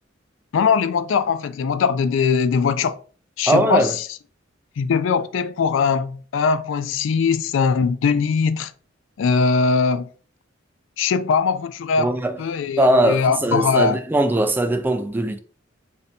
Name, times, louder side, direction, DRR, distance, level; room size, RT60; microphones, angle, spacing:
voice 1, 0.5-3.0 3.4-3.9 4.8-8.7 9.2-10.1 11.0-12.1 12.4-14.0, left 5 dB, 70° left, 0.3 m, -20 dB
voice 2, 3.5-3.9 12.0-12.4 12.8-15.4, right 1 dB, 10° right, 0.3 m, -20 dB
3.3 x 2.7 x 4.1 m
head